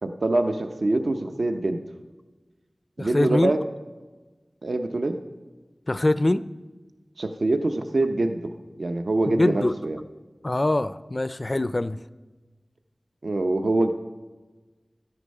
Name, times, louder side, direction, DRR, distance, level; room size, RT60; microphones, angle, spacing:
voice 1, 0.0-1.8 3.0-3.6 4.6-5.2 7.2-8.4 8.8-10.0 13.2-13.9, right 2 dB, 70° right, 0.7 m, -24 dB
voice 2, 3.0-3.6 5.9-6.4 9.3-9.7 10.4-12.0, left 1 dB, 35° left, 0.4 m, -23 dB
13.0 x 9.7 x 5.4 m
wide cardioid pair, 65°, 0 cm